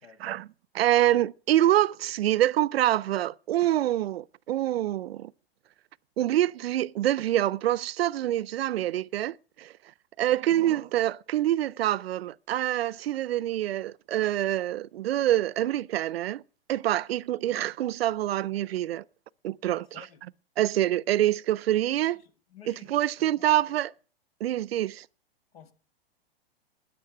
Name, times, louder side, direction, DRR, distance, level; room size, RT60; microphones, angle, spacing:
voice 1, 0.0-0.4 10.3-10.6 19.8-20.2 22.1-23.7 25.5-25.7, left 8 dB, 75° left, 1.9 m, -54 dB
voice 2, 0.7-5.3 6.2-9.7 10.2-16.4 16.7-19.0 19.4-20.0 20.6-22.2 22.7-23.9 24.4-25.1, right 13 dB, 75° right, 0.6 m, -26 dB
13.5 x 10.0 x 5.9 m
hypercardioid pair, 125°, 30 cm